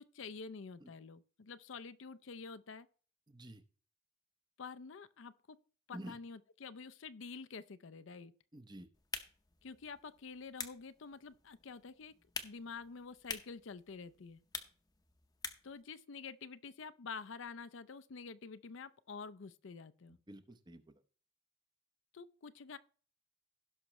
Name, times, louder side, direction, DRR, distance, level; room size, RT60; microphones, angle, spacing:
voice 1, 0.0-2.9 4.6-5.6 5.9-8.3 9.6-12.1 12.4-14.4 15.6-20.2 22.1-22.8, left 5 dB, 70° left, 0.5 m, -48 dB
voice 2, 3.3-3.6 5.9-6.2 8.5-8.9 20.1-21.0, right 1 dB, 20° right, 0.7 m, -50 dB
sound 1, 8.9-15.8, left 5 dB, 20° left, 0.7 m, -48 dB
16.5 x 5.9 x 3.1 m
head